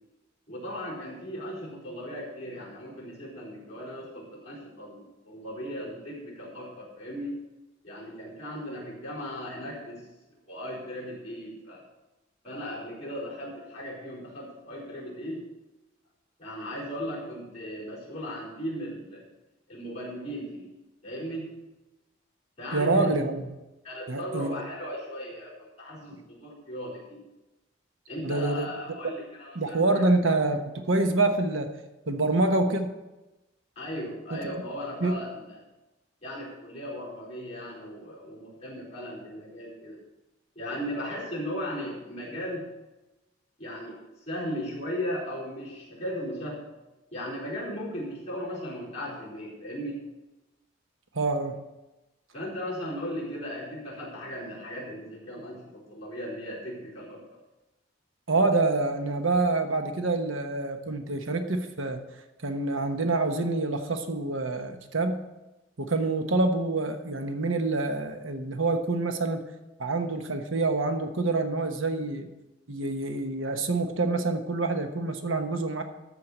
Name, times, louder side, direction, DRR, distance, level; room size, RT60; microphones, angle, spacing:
voice 1, 0.5-7.4 7.8-10.0 10.5-11.8 12.4-15.4 16.4-19.2 19.7-20.7 21.0-21.5 22.6-23.3 23.8-27.2 28.1-29.8 33.8-35.6 36.2-40.0 40.5-42.7 43.6-46.6 47.1-50.1 52.3-57.4 59.1-59.2, equal, 35° left, -5 dB, 4.4 m, -37 dB
voice 2, 22.7-23.5 24.1-24.6 28.2-28.7 29.0-29.1 29.5-31.7 32.1-32.9 34.3-34.4 35.0-35.2 51.1-51.5 58.3-62.0 62.4-65.2 65.8-69.4 69.8-72.3 72.7-75.8, right 2 dB, 90° right, 6 dB, 1.1 m, -26 dB
13.5 x 4.7 x 8.0 m, 1.0 s
head